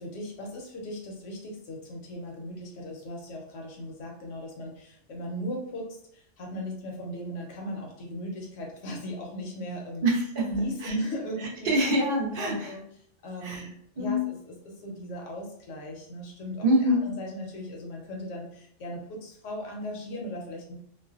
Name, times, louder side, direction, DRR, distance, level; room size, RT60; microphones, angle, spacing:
voice 1, 0.0-10.0 10.5-11.7 12.4-12.8 13.2-16.7 17.0-20.8, equal, 80° left, 0 dB, 1.0 m, -37 dB
voice 2, 10.0-10.5 10.8-10.9 11.6-12.7 13.4-13.7 14.0-14.2 16.6-17.1, equal, 55° right, -1 dB, 0.7 m, -25 dB
2.5 x 2.1 x 2.3 m, 0.67 s
omnidirectional pair, 1.3 m